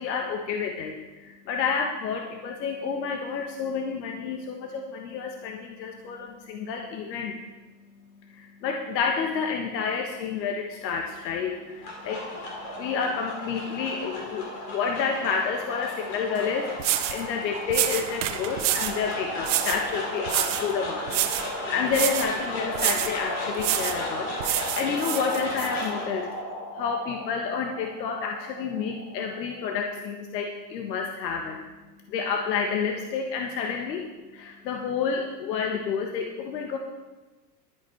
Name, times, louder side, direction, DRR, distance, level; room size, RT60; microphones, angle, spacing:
voice 1, 0.0-31.6 32.1-36.8, left 5 dB, 80° left, 2 dB, 1.5 m, -30 dB
sound 1, 11.5-29.8, left 1 dB, 40° left, 3.8 m, -35 dB
sound 2, 16.4-16.5 16.8-17.2 17.7-19.0 19.4-19.8 20.3-20.7 21.1-21.5 21.9-22.3 22.7-23.2 23.6-24.0 24.4-25.7, right 13 dB, 45° right, 0.7 m, -27 dB
12.0 x 10.0 x 4.6 m, 1.2 s
supercardioid pair, 175°, 50 cm